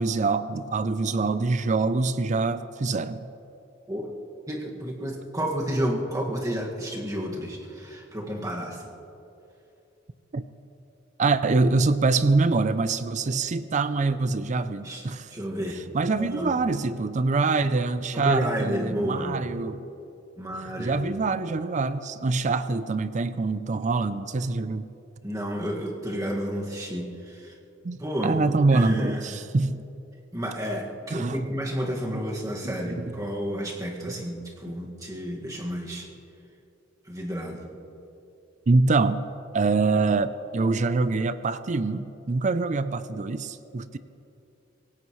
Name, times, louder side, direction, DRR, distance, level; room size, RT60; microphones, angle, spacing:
voice 1, 0.0-3.3 10.3-10.4 11.2-15.3 15.9-19.9 20.6-24.9 27.8-28.0 28.2-29.8 31.1-31.4 32.6-33.0 38.7-39.3 39.5-44.0, right 3 dB, 40° right, 13 dB, 0.5 m, -25 dB
voice 2, 4.5-8.9 14.8-15.0 15.3-16.5 18.1-19.3 20.4-21.0 25.2-27.5 28.0-28.4 28.7-29.3 30.3-36.1 37.1-37.7, equal, 20° right, -2 dB, 1.9 m, -31 dB
25.5 x 17.5 x 3.2 m, 2.8 s
head